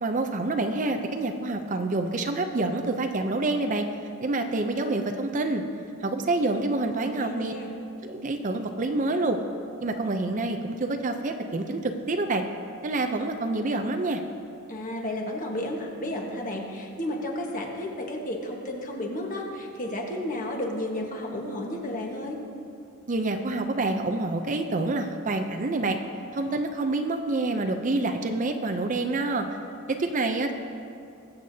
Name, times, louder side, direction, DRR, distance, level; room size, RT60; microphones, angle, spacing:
voice 1, 0.0-3.9 4.2-5.6 6.0-7.5 8.0-9.4 9.8-12.4 12.8-14.2 23.1-26.0 26.3-29.5 30.0-30.5, right 2 dB, 35° right, 5 dB, 0.5 m, -27 dB
voice 2, 6.9-7.7 14.7-22.4, left 1 dB, 35° left, 0 dB, 1.3 m, -32 dB
21.0 x 8.0 x 2.8 m, 2.5 s
head